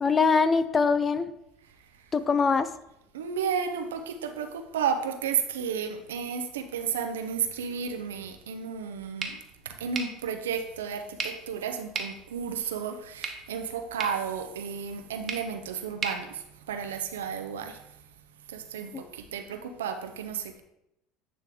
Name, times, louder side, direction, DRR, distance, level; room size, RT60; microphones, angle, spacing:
voice 1, 0.0-1.3 2.1-2.7 18.9-19.0, left 4 dB, 30° left, 13 dB, 0.4 m, -23 dB
voice 2, 3.1-9.4 9.6-17.8 18.5-20.6, right 7 dB, 90° right, 7 dB, 0.6 m, -32 dB
sound 1, 9.2-17.2, right 5 dB, 40° right, 1.0 m, -40 dB
9.3 x 3.3 x 3.5 m, 0.83 s
hypercardioid pair, 80°, 0 cm